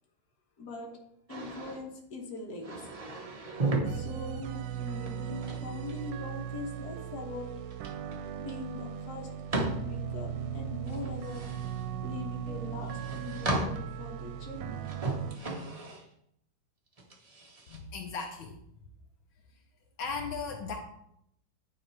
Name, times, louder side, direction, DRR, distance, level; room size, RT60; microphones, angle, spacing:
voice 1, 0.6-0.9 1.3-2.9 3.9-7.5 8.4-9.3 9.5-11.4 12.0-14.8, left 3 dB, 50° left, 1 dB, 1.6 m, -42 dB
sound 1, 1.3-1.8 2.6-3.9 5.1-6.3 7.7-8.2 8.5-8.6 9.5-9.9 10.9-11.8 12.8-13.9 14.9-16.0 17.0-17.8, right 2 dB, 35° right, 0.5 m, -34 dB
sound 2, 3.8-15.4, right 9 dB, 85° right, 1.4 m, -38 dB
voice 2, 17.7-18.6 20.0-20.7, left 4 dB, 80° left, 2 dB, 1.6 m, -36 dB
9.3 x 3.7 x 4.5 m, 0.74 s
omnidirectional pair, 2.2 m